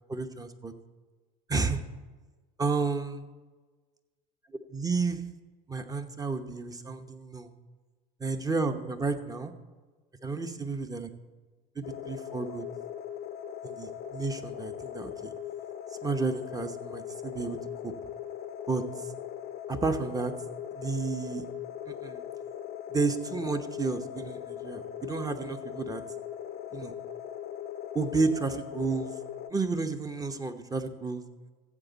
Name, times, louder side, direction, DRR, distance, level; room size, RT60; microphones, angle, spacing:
voice 1, 0.1-0.7 1.5-1.8 2.6-3.2 4.7-5.2 5.7-7.5 8.2-9.5 10.2-11.1 11.8-12.7 13.6-15.3 16.0-17.6 17.8-17.9 18.7-18.8 19.7-20.3 20.7-21.5 21.9-22.2 22.9-26.0 26.7-26.9 27.9-29.1 29.5-31.2, right 4 dB, 20° right, 8 dB, 1.0 m, -31 dB
sound 1, 11.8-29.5, left 10 dB, 50° left, 0.6 m, -40 dB
14.5 x 8.0 x 4.1 m, 1.3 s
supercardioid pair, 85°, 20 cm